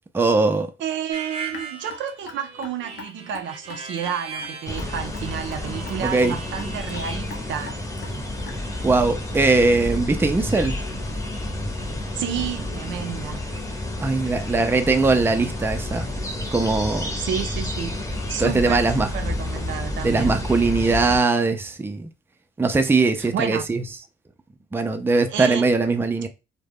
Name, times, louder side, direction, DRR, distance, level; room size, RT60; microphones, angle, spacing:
voice 1, 0.1-0.7 6.0-6.4 8.8-10.7 14.0-16.1 16.5-17.1 18.4-19.1 20.0-22.1 22.6-23.8 24.7-26.3, right 3 dB, 10° right, 0.4 m, -20 dB
voice 2, 0.8-7.8 12.1-13.4 17.2-18.0 18.3-20.4 23.2-23.7 25.3-25.7, right 8 dB, 70° right, 0.4 m, -30 dB
Harmonica, 1.1-7.2, right 4 dB, 30° right, 0.8 m, -38 dB
Raindrop / Drip, 1.5-8.8, left 5 dB, 70° left, 0.7 m, -42 dB
sound 1, 4.7-21.2, left 1 dB, 15° left, 0.8 m, -30 dB
2.3 x 2.1 x 3.4 m
cardioid pair, 90°, 20 cm